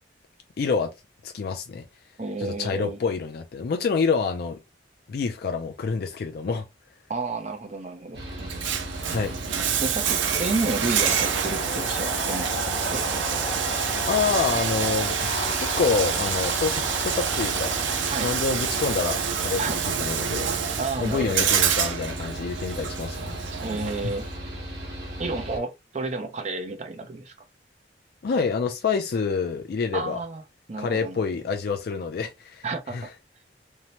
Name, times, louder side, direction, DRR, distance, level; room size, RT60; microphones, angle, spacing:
voice 1, 0.6-0.9 1.2-1.9 2.4-4.6 5.1-6.7 9.1-9.3 14.1-15.3 15.6-17.8 18.2-20.5 21.0-23.4 24.0-24.1 28.2-30.2 30.8-32.7 32.9-33.1, left 5 dB, 55° left, 0.3 m, -27 dB
voice 2, 2.2-3.0 7.1-8.2 9.8-12.6 12.9-13.1 18.1-18.3 19.6-19.8 20.8-21.5 23.6-24.3 25.2-27.3 29.9-30.4 30.7-31.2 32.6-33.1, right 3 dB, 40° right, 0.5 m, -31 dB
Mechanical fan, 8.1-25.6, equal, 65° right, 1.0 m, -37 dB
Bathtub (filling or washing), 8.4-24.3, right 8 dB, 85° right, 0.5 m, -27 dB
sound 1, 11.1-19.8, left 2 dB, 25° left, 0.7 m, -35 dB
2.7 x 2.0 x 2.9 m
head